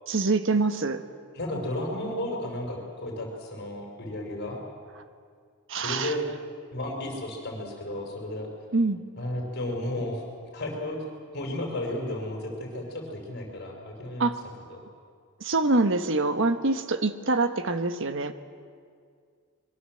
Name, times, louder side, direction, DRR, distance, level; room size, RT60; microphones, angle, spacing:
voice 1, 0.1-1.0 5.7-6.2 8.7-9.0 14.2-14.4 15.4-18.3, right 3 dB, 60° right, 9 dB, 1.3 m, -25 dB
voice 2, 1.3-4.6 5.8-6.3 6.7-8.5 9.2-10.2 10.5-11.0 11.3-14.3 14.7-14.8, left 1 dB, 50° left, 1 dB, 5.7 m, -33 dB
25.0 x 22.5 x 7.8 m, 2.1 s
head